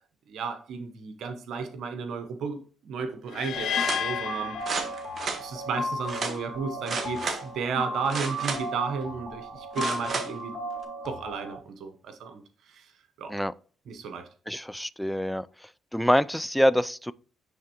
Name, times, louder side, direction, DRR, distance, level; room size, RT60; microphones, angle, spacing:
voice 1, 0.3-4.6 5.4-10.6 11.0-12.4 12.7-12.9 13.2-13.3 13.9-14.3, right 5 dB, 70° right, 0.8 m, -33 dB
sound 1, 3.3-5.5, left 9 dB, 70° left, 0.4 m, -32 dB
sound 2, 3.6-11.6, equal, 20° left, 1.9 m, -35 dB
sound 3, 3.7-4.0 4.6-5.4 6.1-6.4 6.9-7.4 8.0-8.8 9.7-10.3 10.8-10.9, right 4 dB, 50° right, 1.4 m, -32 dB
voice 2, 14.5-15.5 15.9-17.1, equal, ahead, 0.3 m, -25 dB
9.3 x 3.5 x 2.9 m
supercardioid pair, 65°, 0 cm